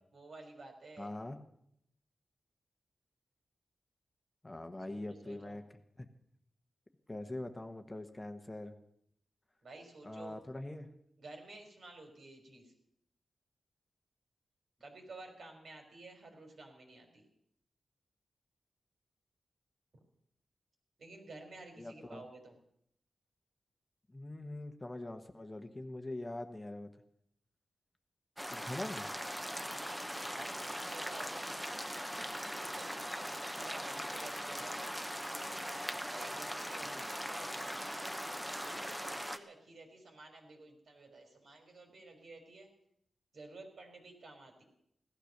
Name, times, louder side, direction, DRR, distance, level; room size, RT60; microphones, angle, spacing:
voice 1, 0.1-1.1 4.9-5.6 9.6-10.4 11.2-12.7 14.8-17.3 21.0-22.6 29.6-31.8 32.1-34.7 36.1-38.0 38.4-42.7 43.3-44.6, right 2 dB, 65° right, 4 dB, 3.9 m, -53 dB
voice 2, 1.0-1.4 4.4-5.6 6.0-6.1 7.1-8.7 10.0-10.9 21.8-22.2 24.1-26.9 28.5-29.1, left 1 dB, 15° left, 6 dB, 1.2 m, -43 dB
sound 1, 28.4-39.4, equal, 5° right, 1.0 m, -40 dB
16.5 x 12.5 x 6.6 m, 0.72 s
wide cardioid pair, 120°, 0 cm